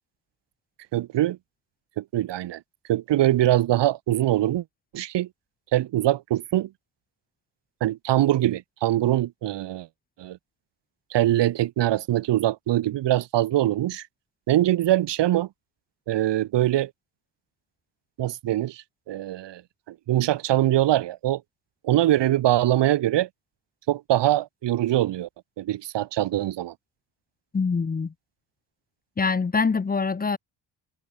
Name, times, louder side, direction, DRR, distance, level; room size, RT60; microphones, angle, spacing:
voice 1, 0.9-1.4 2.0-2.6 2.9-4.6 4.9-5.3 5.7-6.7 7.8-9.9 10.2-10.4 11.1-14.0 14.5-15.5 16.1-16.9 18.2-19.6 20.1-21.4 21.8-23.3 23.9-25.3 25.6-26.7, right 14 dB, 80° right, 2.4 m, -23 dB
voice 2, 27.5-28.1 29.2-30.4, left 4 dB, 20° left, 1.1 m, -24 dB
cardioid pair, 145°, 42 cm